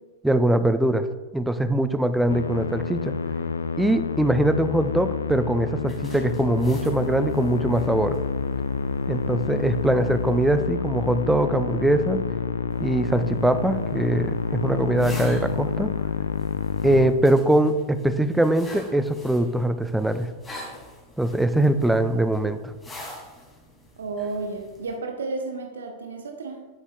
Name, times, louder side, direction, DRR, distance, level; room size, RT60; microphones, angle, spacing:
voice 1, 0.2-1.1 1.3-3.2 3.8-8.2 9.1-12.3 12.8-15.9 16.8-20.3 21.2-22.7, right 1 dB, 5° right, 11 dB, 0.5 m, -22 dB
Musical instrument, 2.3-17.1, left 5 dB, 70° left, 0.3 m, -28 dB
sound 1, 5.8-10.7 12.7-25.0, left 1 dB, 10° left, 2.5 m, -46 dB
voice 2, 24.0-26.7, right 3 dB, 70° right, 4 dB, 0.8 m, -32 dB
9.7 x 8.4 x 2.3 m, 1.2 s
figure-of-eight pair, 90°, 0 cm